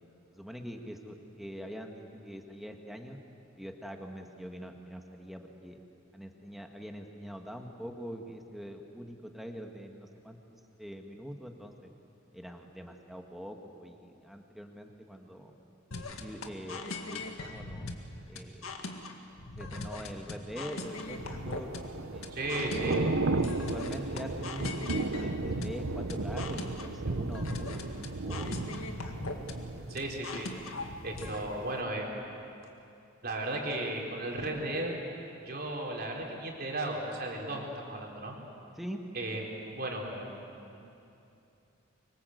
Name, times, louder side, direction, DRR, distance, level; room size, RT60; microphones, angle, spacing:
voice 1, 0.3-3.2 3.6-5.8 6.1-10.4 10.8-11.9 12.3-15.5 16.1-17.9 18.3-18.7 19.6-21.7 22.1-22.4 22.7-28.5 38.8-39.0, equal, ahead, 3 dB, 1.8 m, -43 dB
sound 1, 15.9-31.4, left 2 dB, 90° left, 2.1 m, -40 dB
Thunder / Rain, 21.0-30.9 31.3-31.5, right 2 dB, 80° right, 1.0 m, -34 dB
voice 2, 22.3-23.0 29.9-30.5 31.0-32.2 33.2-35.0 35.4-38.4 39.1-40.4 40.7-40.8, right 2 dB, 50° right, 0 dB, 4.0 m, -35 dB
25.5 x 24.0 x 8.0 m, 2.7 s
head